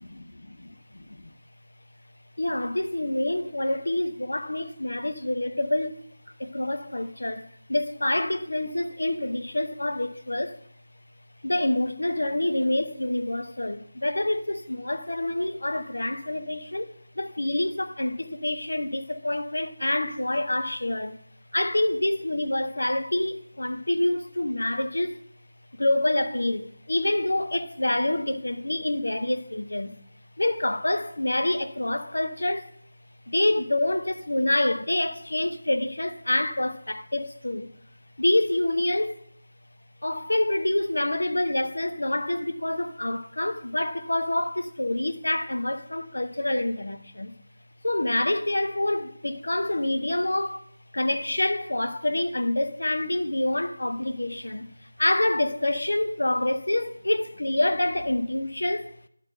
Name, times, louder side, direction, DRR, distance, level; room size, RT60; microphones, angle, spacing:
voice 1, 0.6-1.3 2.4-10.6 11.4-21.2 21.5-25.2 25.7-30.0 30.4-32.8 33.3-37.7 38.2-39.3 40.0-47.4 47.8-50.6 50.9-59.0, left 1 dB, 70° left, 0.8 m, -27 dB
10.0 x 3.8 x 6.4 m
figure-of-eight pair, 165°, 0 cm